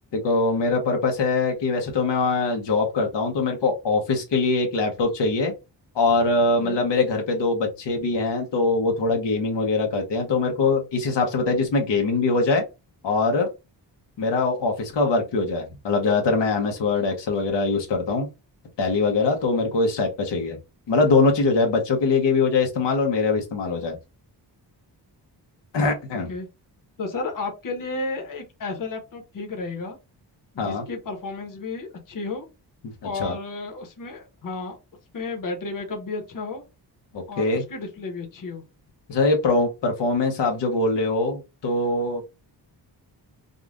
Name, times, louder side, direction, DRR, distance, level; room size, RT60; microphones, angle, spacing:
voice 1, 0.1-5.5 5.9-12.6 13.0-13.5 14.2-18.3 18.8-20.6 20.9-24.0 25.7-26.3 30.6-30.8 32.8-33.3 37.1-37.6 39.1-42.2, left 3 dB, 80° left, 2 dB, 1.2 m, -22 dB
voice 2, 27.0-30.0 30.5-32.4 33.0-34.8 35.1-36.6 37.3-38.6, left 3 dB, 50° left, 3 dB, 1.2 m, -32 dB
5.4 x 2.5 x 2.6 m, 0.26 s
wide cardioid pair, 165°, 42 cm